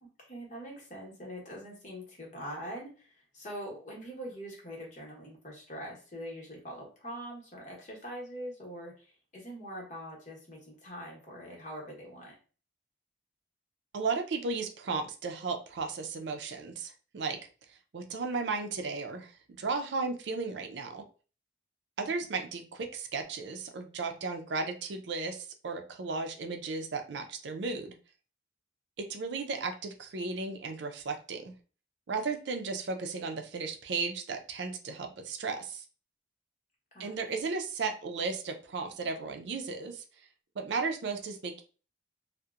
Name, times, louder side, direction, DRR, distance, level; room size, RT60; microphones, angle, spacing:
voice 1, 0.0-12.3 36.9-37.3, equal, 40° left, -2 dB, 0.9 m, -43 dB
voice 2, 13.9-17.4 17.9-21.0 22.0-27.9 29.0-31.5 32.1-35.8 37.0-40.0 40.6-41.6, right 4 dB, 70° right, 5 dB, 0.4 m, -35 dB
2.8 x 2.1 x 2.3 m, 0.37 s
head